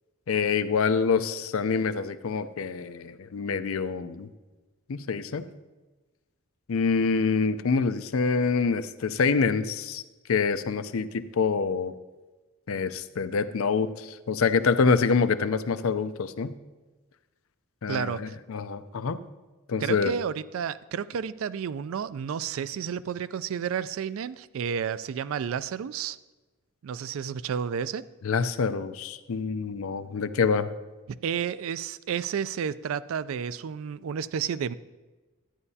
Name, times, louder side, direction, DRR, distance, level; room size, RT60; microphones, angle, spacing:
voice 1, 0.3-4.3 4.9-5.5 6.7-10.0 10.3-11.9 12.7-16.5 17.8-19.2 19.7-20.1 28.2-30.7, left 5 dB, 75° left, 12 dB, 0.5 m, -26 dB
voice 2, 17.9-18.4 19.8-26.2 26.8-28.0 31.1-34.8, right 7 dB, 70° right, 17 dB, 0.3 m, -31 dB
13.0 x 9.7 x 2.7 m, 1.2 s
head